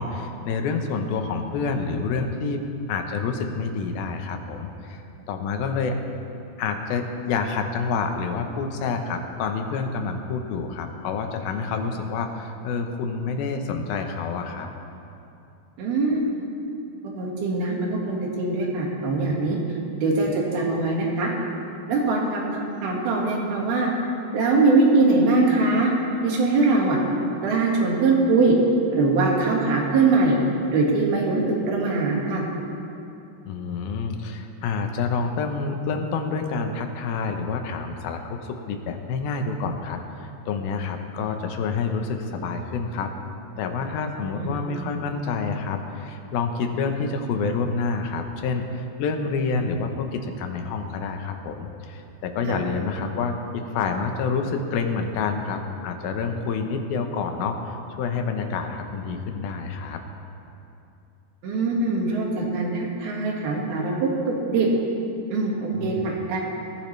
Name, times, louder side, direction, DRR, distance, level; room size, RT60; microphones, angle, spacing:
voice 1, 0.0-2.6 2.9-5.0 5.3-6.0 6.6-14.7 33.5-43.1 43.6-60.0 65.8-66.1, left 4 dB, 80° left, 5 dB, 2.8 m, -28 dB
voice 2, 15.8-16.4 17.0-19.6 20.0-21.3 21.9-22.4 22.8-23.9 24.3-25.9 26.2-27.0 27.4-28.5 28.9-30.4 30.7-32.5 44.3-44.6 52.4-52.6 61.4-64.1 64.5-64.7 65.3-66.4, right 3 dB, 90° right, -2 dB, 3.8 m, -22 dB
20.0 x 14.5 x 3.3 m, 2.8 s
omnidirectional pair, 4.2 m